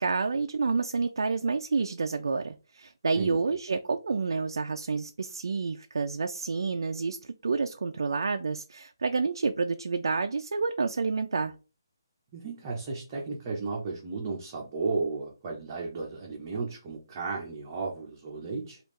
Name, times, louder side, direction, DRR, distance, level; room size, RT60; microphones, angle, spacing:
voice 1, 0.0-11.5, right 4 dB, 70° right, 6 dB, 0.3 m, -29 dB
voice 2, 12.3-18.8, right 4 dB, 20° right, -2 dB, 0.7 m, -34 dB
3.5 x 2.4 x 3.1 m, 0.32 s
hypercardioid pair, 170°, 2 cm